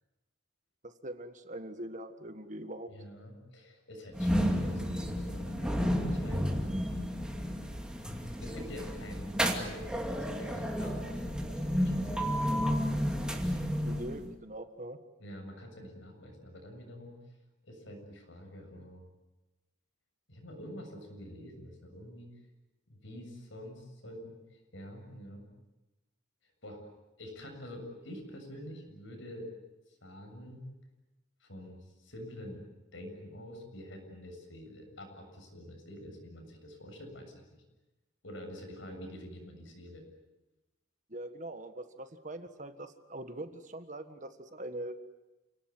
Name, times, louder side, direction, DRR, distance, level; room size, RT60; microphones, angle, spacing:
voice 1, 0.8-2.9 13.8-15.0 41.1-45.0, right 1 dB, 40° right, 9 dB, 1.6 m, -42 dB
voice 2, 2.9-6.4 8.4-12.7 15.2-17.4 17.6-19.0 20.3-22.3 22.9-25.5 26.4-26.8 27.2-29.5 29.9-30.7 31.4-32.6 32.9-37.6 38.2-40.0, equal, 70° left, 4 dB, 7.3 m, -47 dB
sound 1, 4.1-14.3, equal, 5° right, 2.6 m, -32 dB
29.0 x 18.5 x 9.6 m, 1.0 s
head